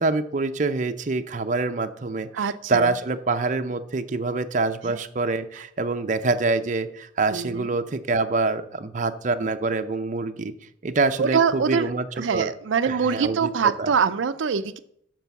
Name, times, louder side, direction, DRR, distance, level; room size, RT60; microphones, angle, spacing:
voice 1, 0.0-10.5 10.8-12.1 12.3-12.5 12.8-13.9, right 3 dB, 40° right, 8 dB, 0.6 m, -25 dB
voice 2, 2.3-2.9 4.9-5.0 7.3-7.7 11.2-11.9 12.2-14.8, right 6 dB, 85° right, 12 dB, 0.5 m, -24 dB
9.0 x 6.1 x 6.9 m, 0.71 s
head